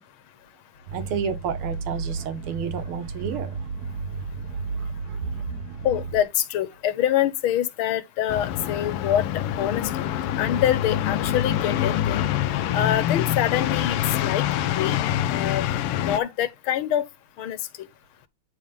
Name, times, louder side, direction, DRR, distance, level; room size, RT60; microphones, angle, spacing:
sound 1, 0.9-6.2, right 4 dB, 60° right, 1.1 m, -33 dB
voice 1, 0.9-3.5, right 6 dB, 75° right, 2.1 m, -30 dB
voice 2, 5.8-10.1 10.4-12.3 12.7-14.5 14.8-15.0 15.3-15.7 15.9-17.1 17.4-17.6, left 11 dB, 70° left, 1.8 m, -25 dB
sound 2, 8.3-16.2, left 11 dB, 90° left, 1.6 m, -25 dB
9.2 x 3.3 x 5.3 m
omnidirectional pair, 2.4 m